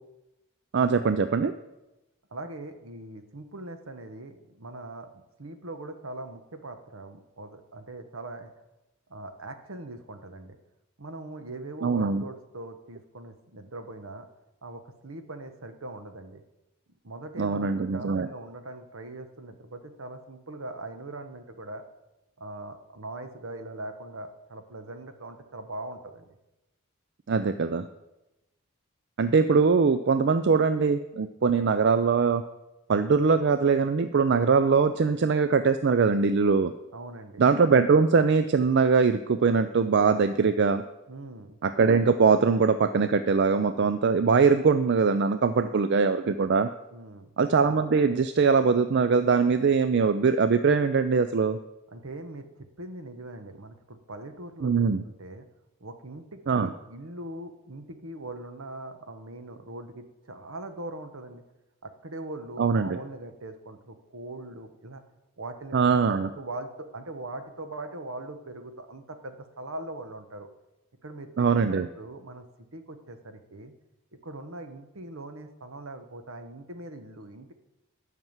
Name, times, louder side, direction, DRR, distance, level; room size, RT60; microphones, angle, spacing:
voice 1, 0.7-1.5 11.8-12.2 17.4-18.3 27.3-27.9 29.2-32.4 32.9-36.7 37.4-40.8 41.6-46.7 47.4-51.6 54.6-55.0 56.5-56.7 62.6-63.0 65.7-66.3 71.4-71.9, right 5 dB, 55° right, 10 dB, 0.4 m, -22 dB
voice 2, 2.3-8.5 9.1-10.6 11.0-14.3 14.6-16.4 17.0-21.8 22.4-26.2 36.9-37.4 41.1-41.6 45.6-45.8 46.9-47.3 51.9-55.5 55.8-61.4 61.8-65.0 65.4-70.5 71.0-72.4 72.7-73.7 74.2-77.5, right 2 dB, 70° right, 8 dB, 1.1 m, -41 dB
11.0 x 5.9 x 7.3 m, 0.97 s
head